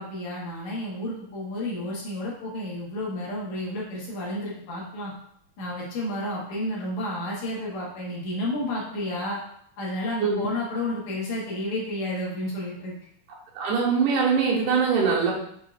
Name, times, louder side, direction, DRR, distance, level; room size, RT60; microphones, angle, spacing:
voice 1, 0.0-5.1 5.6-9.4 9.8-13.0, left 1 dB, 70° left, -4 dB, 2.4 m, -31 dB
voice 2, 13.6-15.4, right 5 dB, 85° right, -3 dB, 2.5 m, -22 dB
6.0 x 3.6 x 2.4 m, 0.70 s
omnidirectional pair, 3.5 m